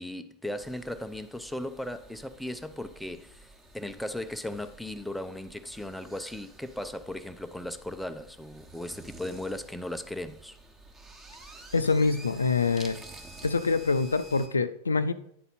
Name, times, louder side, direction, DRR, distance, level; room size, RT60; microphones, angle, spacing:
voice 1, 0.0-3.5 3.7-10.6, left 1 dB, ahead, 0.4 m, -37 dB
sound 1, 0.6-14.5, right 2 dB, 15° right, 1.1 m, -50 dB
voice 2, 11.7-13.0 13.4-15.1, left 4 dB, 75° left, 0.4 m, -25 dB
9.2 x 4.0 x 4.1 m
figure-of-eight pair, 90°, 0 cm